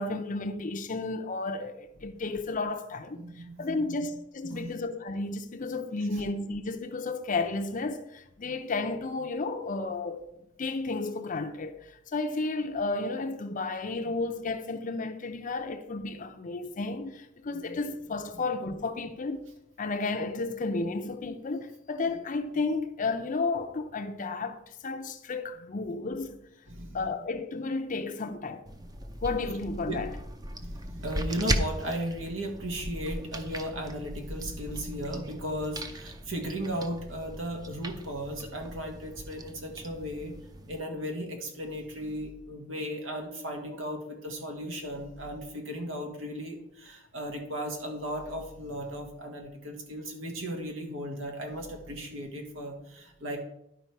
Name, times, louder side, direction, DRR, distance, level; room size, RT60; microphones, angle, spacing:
voice 1, 0.0-10.3 10.6-19.4 19.8-26.4 26.9-28.6 29.2-30.1, left 3 dB, 40° left, 0.6 m, -32 dB
voice 2, 3.1-4.0 4.5-4.7 6.1-6.2 14.0-14.1 17.5-17.8 26.7-27.0 29.9-30.0 30.5-40.4 40.7-53.4, equal, 90° right, 1.7 m, -36 dB
sound 1, 28.7-40.8, right 1 dB, 20° right, 0.6 m, -37 dB
11.0 x 5.0 x 4.6 m
head